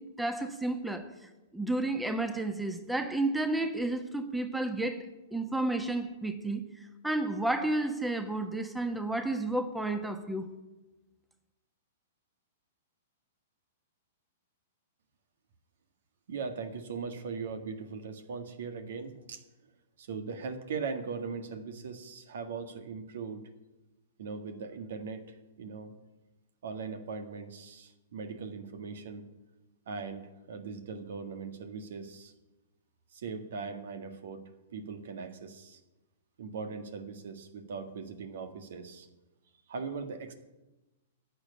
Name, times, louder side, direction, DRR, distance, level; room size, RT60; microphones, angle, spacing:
voice 1, 0.2-1.1 1.5-10.5, right 2 dB, 5° right, 8 dB, 1.2 m, -31 dB
voice 2, 16.3-19.4 20.0-23.4 24.2-25.9 26.6-29.3 29.9-32.3 33.1-34.4 34.7-35.8 36.4-39.1 39.7-40.3, right 5 dB, 65° right, 8 dB, 1.7 m, -39 dB
11.5 x 7.4 x 9.7 m, 1.1 s
hypercardioid pair, 110°, 0 cm